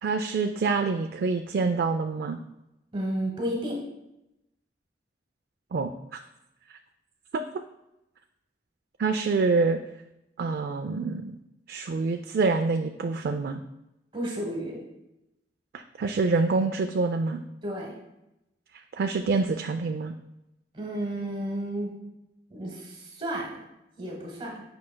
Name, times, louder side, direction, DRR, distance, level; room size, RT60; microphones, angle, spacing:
voice 1, 0.0-2.4 5.7-6.2 7.3-7.4 9.0-9.8 10.4-11.4 11.7-13.6 15.7-17.4 19.0-20.1, right 4 dB, 60° right, 5 dB, 0.3 m, -26 dB
voice 2, 2.9-3.8 14.1-14.8 17.6-17.9 20.7-21.9 22.5-23.6 24.0-24.6, right 1 dB, 30° right, -1 dB, 1.1 m, -32 dB
8.5 x 5.5 x 2.2 m, 0.90 s
head